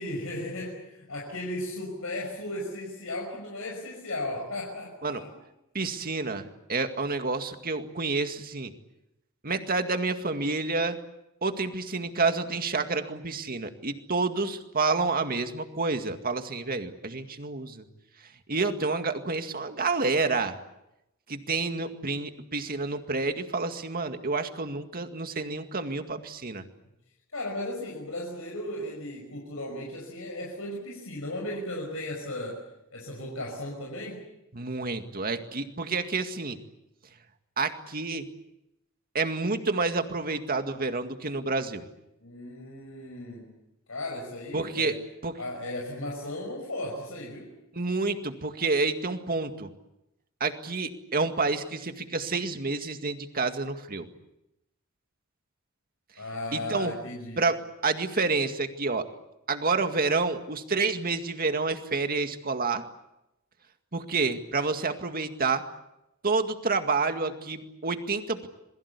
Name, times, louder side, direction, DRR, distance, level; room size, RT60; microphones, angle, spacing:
voice 1, 0.0-5.3 27.3-32.6 32.9-34.2 42.2-43.5 43.9-45.0 45.4-47.5 56.2-57.5, left 1 dB, 80° left, -1 dB, 5.7 m, -36 dB
voice 2, 5.7-8.7 9.4-11.0 11.4-17.9 18.5-20.6 21.3-26.6 34.5-36.6 37.6-38.3 39.1-41.8 44.5-45.0 45.2-45.3 47.7-49.7 50.4-54.1 56.5-56.9 57.4-59.0 59.5-62.8 63.9-65.6 66.2-68.5, right 3 dB, 45° right, 7 dB, 2.1 m, -29 dB
27.5 x 22.0 x 8.4 m, 0.87 s
head